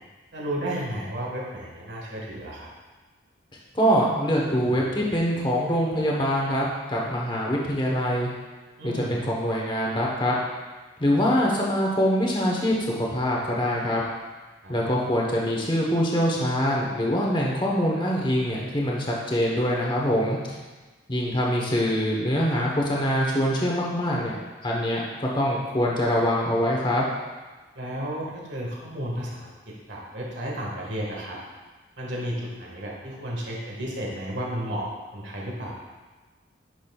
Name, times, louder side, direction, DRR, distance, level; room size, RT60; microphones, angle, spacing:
voice 1, 0.3-2.7 8.8-9.2 14.6-14.8 27.7-31.4 32.0-35.7, equal, 70° right, -3 dB, 1.7 m, -33 dB
voice 2, 3.7-8.3 8.8-10.3 11.0-12.8 13.1-14.0 14.7-20.4 21.1-24.4 24.6-27.1, equal, 25° left, -3 dB, 1.0 m, -24 dB
9.9 x 5.9 x 2.3 m, 1.3 s
head